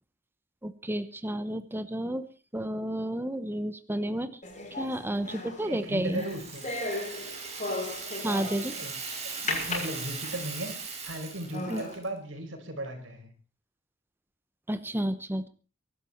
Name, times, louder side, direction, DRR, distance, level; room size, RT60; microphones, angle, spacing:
voice 1, 0.6-2.3 2.5-4.4 4.8-6.2 8.2-8.7 11.7-11.8 14.7-15.5, right 1 dB, 10° right, 11 dB, 1.0 m, -31 dB
sound 1, 4.4-8.8 9.5-10.6 11.1-11.2 11.5-12.0, left 2 dB, 40° left, 6.8 m, -36 dB
voice 2, 5.6-6.7 8.6-13.3, right 1 dB, 90° right, 5 dB, 5.1 m, -37 dB
Rattle (instrument), 6.1-12.1, right 5 dB, 35° right, 5.3 m, -39 dB
23.5 x 12.0 x 4.4 m, 0.36 s
head